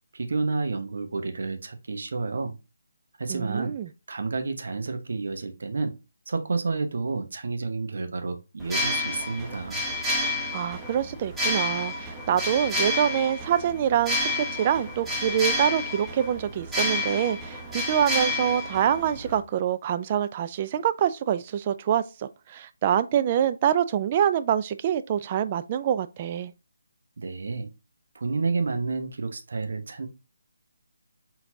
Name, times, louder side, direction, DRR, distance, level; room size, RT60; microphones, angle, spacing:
voice 1, 0.1-2.5 3.2-3.7 4.1-5.9 6.3-9.8 27.2-27.7 28.1-30.1, right 4 dB, 60° right, 0.9 m, -30 dB
voice 2, 3.3-3.9 10.5-26.5, right 9 dB, 30° right, 0.3 m, -25 dB
sound 1, 8.6-19.4, left 2 dB, 5° right, 0.8 m, -30 dB
4.3 x 3.9 x 2.7 m
figure-of-eight pair, 150°, 0 cm